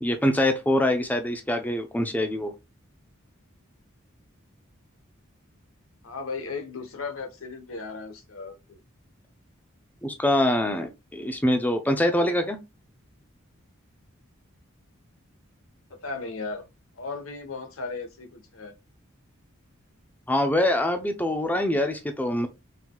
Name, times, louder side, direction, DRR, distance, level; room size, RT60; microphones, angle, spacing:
voice 1, 0.0-2.5 10.0-12.6 20.3-22.5, left 1 dB, 10° left, 0.6 m, -24 dB
voice 2, 6.0-8.8 15.9-16.7 17.0-18.7, left 4 dB, 75° left, 1.0 m, -36 dB
4.4 x 3.9 x 2.3 m
head